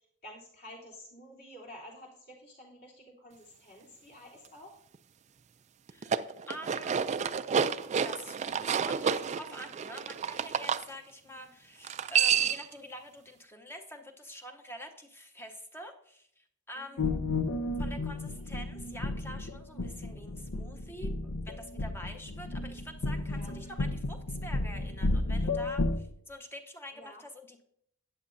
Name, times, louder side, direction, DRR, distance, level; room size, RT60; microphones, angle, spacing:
voice 1, 0.2-4.7 11.4-11.5 16.7-17.1 23.3-23.5 26.9-27.2, equal, 45° left, -4 dB, 3.3 m, -50 dB
voice 2, 5.9-7.0 8.0-17.1 17.8-27.6, equal, 10° left, 4 dB, 0.8 m, -46 dB
sound 1, 5.9-10.8 11.8-12.7, right 7 dB, 30° right, 0.3 m, -29 dB
sound 2, 17.0-26.0, left 2 dB, 70° left, 0.7 m, -33 dB
13.0 x 9.2 x 2.6 m, 0.69 s
head